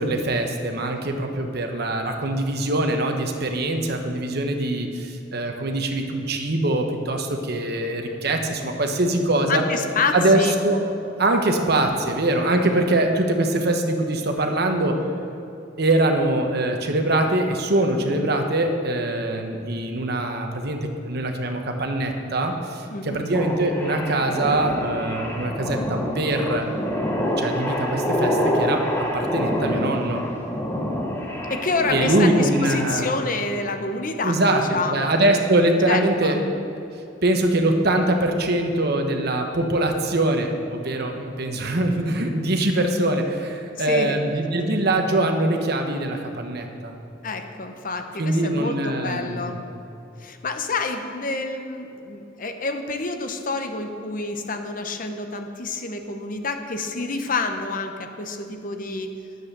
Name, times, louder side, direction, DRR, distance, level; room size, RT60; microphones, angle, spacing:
voice 1, 0.0-9.6 10.1-10.8 11.2-15.0 15.8-26.6 27.4-30.2 31.9-33.1 34.2-34.6 34.9-36.4 37.2-46.9 48.1-49.6, right 1 dB, 60° right, 4 dB, 1.1 m, -23 dB
voice 2, 9.5-10.6 22.9-23.2 31.5-35.1 35.9-36.4 43.8-44.2 47.2-49.6 50.2-59.1, left 3 dB, 45° left, 6 dB, 0.9 m, -28 dB
sound 1, 23.3-33.3, equal, 15° left, 1.2 m, -27 dB
10.5 x 8.0 x 6.7 m, 2.8 s
head